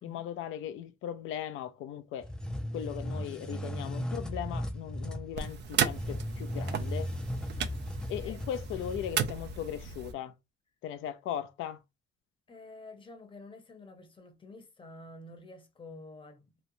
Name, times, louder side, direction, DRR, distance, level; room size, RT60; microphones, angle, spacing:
voice 1, 0.0-2.3 2.7-7.1 8.1-10.3 10.8-11.8, left 10 dB, 85° left, 0.4 m, -38 dB
sound 1, 2.2-9.5, equal, 5° left, 0.4 m, -37 dB
sound 2, 5.3-10.1, right 7 dB, 60° right, 0.4 m, -35 dB
voice 2, 8.0-8.4 12.5-16.5, left 2 dB, 25° left, 0.7 m, -49 dB
2.9 x 2.1 x 2.6 m
cardioid pair, 90°, 20 cm